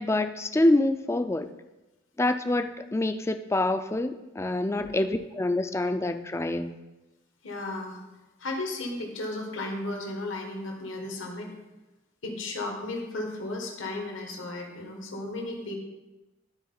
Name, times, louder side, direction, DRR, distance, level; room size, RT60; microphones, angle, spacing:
voice 1, 0.0-1.5 2.2-6.8, left 1 dB, 15° left, 8 dB, 0.3 m, -26 dB
voice 2, 7.4-8.0 8.4-11.5 12.2-15.7, left 2 dB, 80° left, 1 dB, 1.5 m, -34 dB
12.5 x 4.3 x 3.9 m, 1.0 s
head